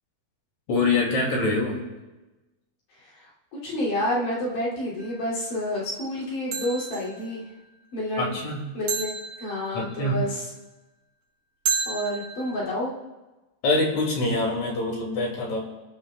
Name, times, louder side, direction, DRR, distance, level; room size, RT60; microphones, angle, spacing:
voice 1, 0.7-1.8 8.2-8.6 9.7-10.2 13.6-15.6, left 2 dB, 65° left, -1 dB, 3.8 m, -25 dB
voice 2, 3.0-7.4 7.9-8.3 8.7-10.4 11.9-12.9, left 1 dB, 85° left, -7 dB, 4.6 m, -29 dB
sound 1, 5.0-5.3 6.5-7.2 8.9-10.0 11.7-12.6, right 5 dB, 80° right, 3.0 m, -31 dB
26.5 x 10.5 x 2.4 m, 1.1 s
omnidirectional pair, 3.6 m